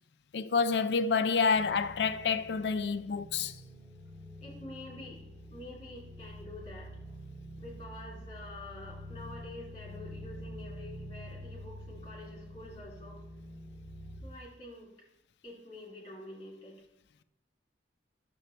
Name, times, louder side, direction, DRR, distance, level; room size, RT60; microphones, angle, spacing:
voice 1, 0.3-3.6, left 5 dB, 65° left, 0.4 m, -28 dB
sound 1, 1.5-14.2, equal, 25° right, 2.9 m, -47 dB
voice 2, 4.4-5.2 5.5-7.0 7.6-13.2 14.2-14.9 15.4-16.8, left 1 dB, 30° left, 2.9 m, -47 dB
9.8 x 6.8 x 3.2 m
head